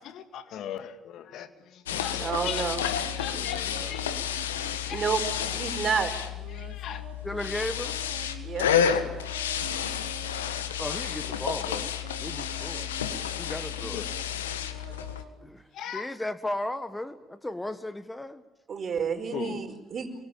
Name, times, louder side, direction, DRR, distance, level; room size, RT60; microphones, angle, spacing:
voice 1, 0.1-4.3 4.8-5.0 5.4-5.8 6.5-7.1 13.9-14.1 15.1-15.2 15.7-16.1 19.3-19.6, left 10 dB, 60° left, 10 dB, 2.1 m, -39 dB
sound 1, 1.9-15.2, left 9 dB, 85° left, 1.5 m, -31 dB
voice 2, 2.2-2.8 4.9-5.2 5.5-6.1 8.4-8.7 18.7-20.1, right 6 dB, 45° right, 7 dB, 5.0 m, -29 dB
sound 2, 2.6-5.7 6.3-10.5 11.1-15.8, right 8 dB, 60° right, 2.8 m, -48 dB
voice 3, 7.2-8.0 10.8-11.9 12.2-12.9 13.4-14.0 15.4-15.6 15.9-18.4, left 1 dB, 10° left, 12 dB, 1.4 m, -35 dB
28.0 x 23.5 x 8.9 m, 0.95 s
hypercardioid pair, 50°, 0 cm